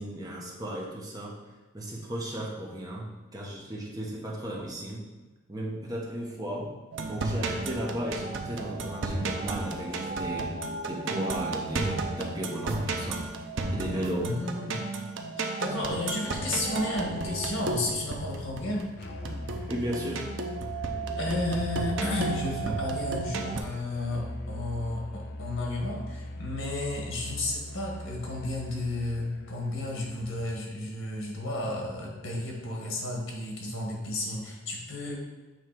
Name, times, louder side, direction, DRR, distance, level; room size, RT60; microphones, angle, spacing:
voice 1, 0.0-1.3 1.7-5.0 5.5-6.7 7.1-10.5 10.9-13.2 13.7-14.3 19.7-20.3, right 1 dB, 20° right, -3 dB, 1.1 m, -35 dB
sound 1, 6.9-23.6, right 3 dB, 65° right, 0.6 m, -33 dB
voice 2, 14.2-14.9 15.5-19.0 21.2-35.2, left 2 dB, 80° left, -1 dB, 1.7 m, -32 dB
Musical instrument, 19.0-30.7, left 1 dB, 50° left, 0.7 m, -40 dB
7.6 x 3.3 x 4.8 m, 1.2 s
head